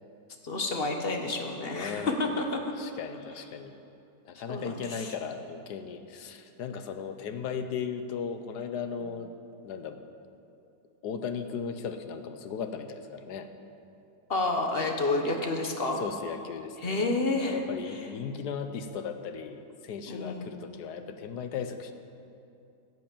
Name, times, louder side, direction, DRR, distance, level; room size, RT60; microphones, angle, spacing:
voice 1, 0.4-2.6 4.5-5.1 14.3-16.0 16.8-17.6 17.9-18.1 20.1-20.5, left 2 dB, 40° left, 3 dB, 1.3 m, -29 dB
voice 2, 1.7-2.2 2.7-3.7 4.2-9.3 9.6-10.0 11.0-13.5 16.0-17.1 17.4-21.9, left 6 dB, 90° left, 8 dB, 1.4 m, -37 dB
15.5 x 7.8 x 7.3 m, 2.6 s
omnidirectional pair, 1.7 m